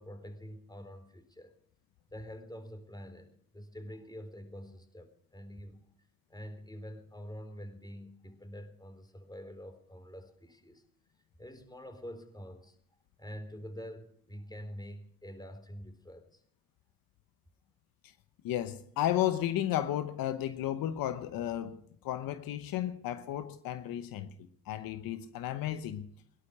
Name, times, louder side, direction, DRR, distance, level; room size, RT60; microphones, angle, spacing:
voice 1, 0.0-1.5 2.1-5.9 6.3-10.8 11.4-12.8 13.2-16.4, equal, 10° left, 4.0 m, -46 dB
voice 2, 18.4-24.3 24.7-26.1, left 12 dB, 80° left, 1.0 m, -33 dB
18.0 x 11.5 x 6.6 m
supercardioid pair, 50°, 34 cm